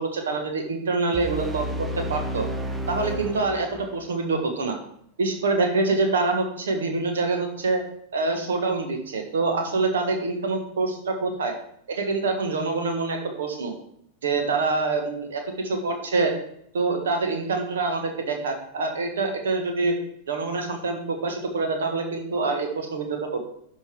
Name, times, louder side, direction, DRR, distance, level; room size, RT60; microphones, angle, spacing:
voice 1, 0.0-2.5 2.9-4.8 5.2-7.8 8.1-11.5 11.9-13.7 14.2-16.3 16.7-19.9 20.3-23.4, right 3 dB, 65° right, 4 dB, 1.7 m, -26 dB
sound 1, 1.1-4.2, equal, 10° right, 0.8 m, -32 dB
11.5 x 5.5 x 4.6 m, 0.71 s
figure-of-eight pair, 90°, 0 cm